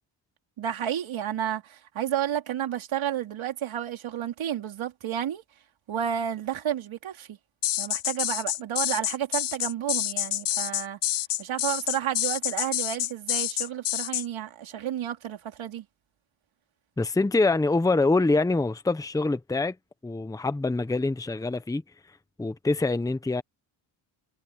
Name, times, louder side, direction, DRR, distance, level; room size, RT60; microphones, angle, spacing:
voice 1, 0.6-5.4 5.9-7.4 7.8-11.0 11.4-15.8, right 10 dB, 75° right, 3.9 m, -31 dB
sound 1, 7.6-14.3, left 13 dB, 60° left, 0.7 m, -28 dB
voice 2, 17.0-19.8 20.0-21.8 22.4-23.4, left 3 dB, 5° left, 0.8 m, -25 dB
cardioid pair, 130°, 47 cm